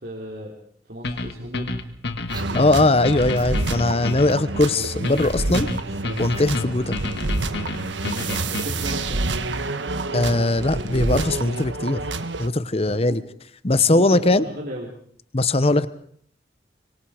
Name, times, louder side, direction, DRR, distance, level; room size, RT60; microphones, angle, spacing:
voice 1, 0.0-0.5 0.9-1.8 8.0-9.2 12.9-13.2 13.9-14.9, equal, 55° right, -2 dB, 3.5 m, -35 dB
sound 1, 1.0-8.9, left 2 dB, 70° left, 1.9 m, -30 dB
sound 2, 2.3-2.7 3.3-3.5 4.2-4.6 5.2-5.6 6.3-6.5 8.3-9.3, right 3 dB, 25° right, 3.0 m, -41 dB
sound 3, 2.3-12.5, right 2 dB, 85° right, 1.4 m, -28 dB
voice 2, 2.5-5.7 6.2-7.0 10.1-12.1 12.4-13.2 13.6-14.4 15.3-15.9, left 2 dB, 35° left, 15 dB, 0.9 m, -20 dB
25.0 x 24.5 x 5.0 m, 0.62 s
head